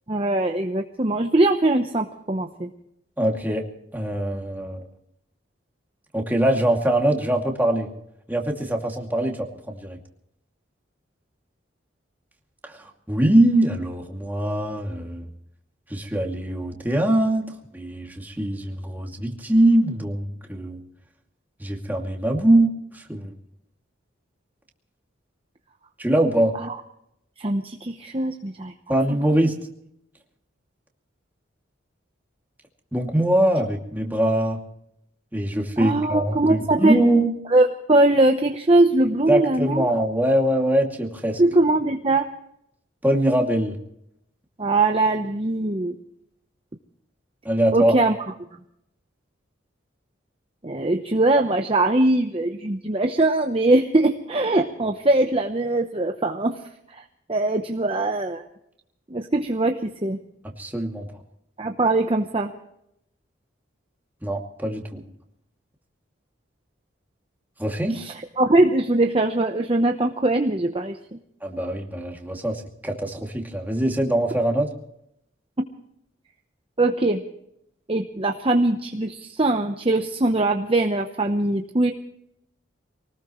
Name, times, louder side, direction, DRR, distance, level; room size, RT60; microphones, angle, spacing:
voice 1, 0.1-2.7 26.6-26.8 27.4-28.9 35.8-37.0 37.5-39.9 41.4-42.3 44.6-45.9 47.7-48.2 50.6-56.6 56.9-57.0 57.3-58.4 59.1-60.2 61.6-62.5 67.9-71.0 76.8-77.2 77.9-81.9, right 2 dB, 30° right, 5 dB, 0.9 m, -21 dB
voice 2, 3.2-3.6 3.9-4.8 6.1-7.9 8.3-10.0 12.6-15.2 15.9-20.8 21.6-23.3 26.0-26.5 28.9-29.6 32.9-34.6 35.3-37.3 39.3-41.4 43.0-43.8 47.4-47.9 60.6-61.1 64.2-65.0 67.6-68.0 71.4-74.7, right 1 dB, 10° right, 1 dB, 2.4 m, -22 dB
24.5 x 19.0 x 3.1 m, 0.76 s
head